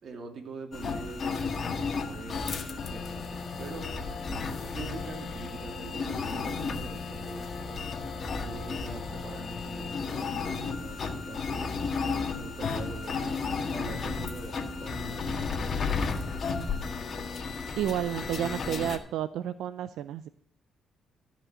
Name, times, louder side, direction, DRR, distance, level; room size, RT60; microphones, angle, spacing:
voice 1, 0.0-1.5 2.1-4.0 4.7-8.0 8.4-11.8 12.3-15.9, right 4 dB, 55° right, 2.3 m, -44 dB
sound 1, 0.7-19.0, left 4 dB, 50° left, 1.6 m, -33 dB
voice 2, 17.8-20.3, right 11 dB, 85° right, 0.4 m, -31 dB
13.5 x 5.1 x 7.6 m
cardioid pair, 90°, 0 cm